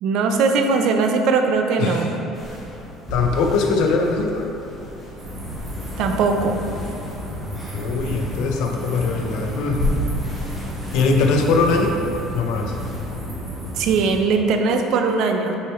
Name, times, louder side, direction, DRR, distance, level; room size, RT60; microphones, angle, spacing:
voice 1, 0.0-2.1 6.0-6.6 13.7-15.6, right 4 dB, 60° right, 5 dB, 0.5 m, -20 dB
voice 2, 1.8-2.1 3.1-4.4 7.7-9.8 10.9-12.0 12.3-12.7, left 4 dB, 65° left, 3 dB, 0.7 m, -21 dB
Rubbing cloth, 2.3-13.1, left 1 dB, ahead, 1.5 m, -33 dB
sound 1, 5.2-14.1, equal, 20° right, 1.2 m, -32 dB
8.4 x 4.4 x 3.1 m, 2.8 s
cardioid pair, 160°, 0 cm